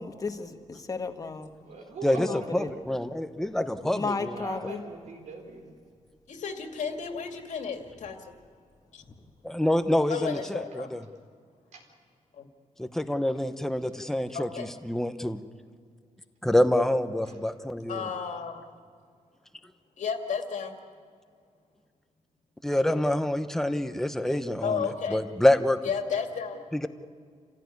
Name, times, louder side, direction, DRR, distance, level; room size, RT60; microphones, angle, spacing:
voice 1, 0.0-1.5 2.2-2.7 3.8-4.8 9.1-9.2, left 4 dB, 30° left, 7 dB, 1.4 m, -34 dB
voice 2, 1.6-2.9 4.3-5.7 11.7-11.8 14.0-14.1 17.2-17.4, right 3 dB, 70° right, 3 dB, 4.3 m, -42 dB
voice 3, 2.5-4.4 9.4-11.0 12.8-15.4 16.4-18.0 22.6-25.8 26.7-26.9, left 1 dB, 5° left, 9 dB, 0.9 m, -26 dB
voice 4, 6.3-8.3 8.9-9.0 10.1-10.9 12.3-12.5 14.3-14.7 17.9-18.6 20.0-20.8 24.6-25.2 25.8-26.6, left 6 dB, 70° left, 5 dB, 2.4 m, -33 dB
28.0 x 16.0 x 9.6 m, 2.1 s
wide cardioid pair, 165°, 13 cm